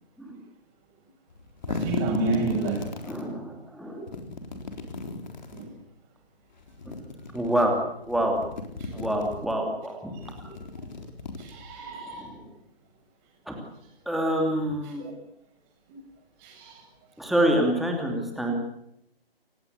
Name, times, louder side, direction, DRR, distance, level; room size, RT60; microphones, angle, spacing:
sound 1, 1.3-3.3 4.1-5.7 6.6-7.7 8.0-9.5 10.1-11.9, left 3 dB, 45° left, 4.0 m, -36 dB
voice 1, 1.7-2.8 5.5-5.7 8.8-8.9 11.4-12.3 15.0-15.1 16.4-16.8, right 3 dB, 20° right, 2 dB, 7.5 m, -30 dB
voice 2, 3.0-4.0 7.3-7.7 8.1-8.4 8.9-10.1 12.2-12.3 13.5-13.6 14.1-15.1 17.2-18.5, right 1 dB, ahead, 1 dB, 2.9 m, -26 dB
29.5 x 16.5 x 8.3 m, 0.76 s
figure-of-eight pair, 145°, 31 cm